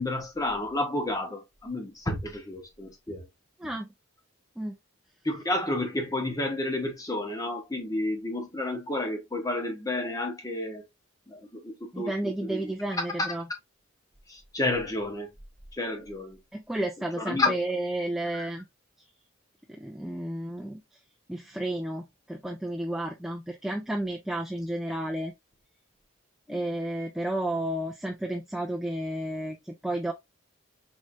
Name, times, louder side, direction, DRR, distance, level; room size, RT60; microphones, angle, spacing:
voice 1, 0.0-3.3 5.2-10.8 11.3-12.7 14.3-15.3 15.7-16.4 17.2-17.5 18.3-18.5 26.5-26.6, left 2 dB, 15° left, 0.9 m, -31 dB
voice 2, 11.9-13.4 16.5-18.7 19.7-20.8 21.3-25.3 26.5-30.1, right 1 dB, ahead, 0.3 m, -32 dB
4.4 x 3.1 x 2.5 m
head